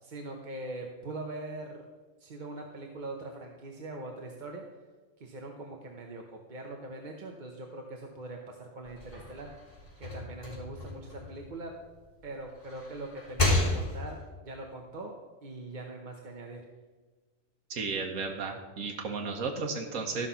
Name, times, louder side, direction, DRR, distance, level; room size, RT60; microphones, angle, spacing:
voice 1, 0.0-1.9 2.2-4.6 5.2-9.5 10.0-11.7 12.2-15.1 15.4-16.6, right 2 dB, 40° right, 1 dB, 0.9 m, -42 dB
sound 1, 8.8-12.0 12.5-14.3, left 2 dB, 20° left, 3.9 m, -32 dB
voice 2, 17.7-20.3, right 4 dB, 80° right, 1 dB, 1.3 m, -34 dB
13.5 x 5.8 x 5.6 m, 1.4 s
omnidirectional pair, 1.4 m